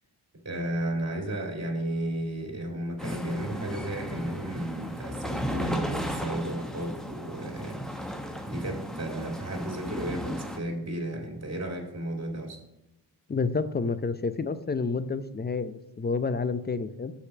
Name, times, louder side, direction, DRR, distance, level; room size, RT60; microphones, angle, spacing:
voice 1, 0.4-8.2 8.4-12.6, right 1 dB, 35° right, 1 dB, 2.7 m, -34 dB
sound 1, 3.0-10.6, equal, ahead, 1.2 m, -35 dB
voice 2, 13.3-17.1, left 4 dB, 20° left, 13 dB, 0.7 m, -29 dB
6.6 x 5.0 x 6.7 m, 0.91 s
supercardioid pair, 50°, 47 cm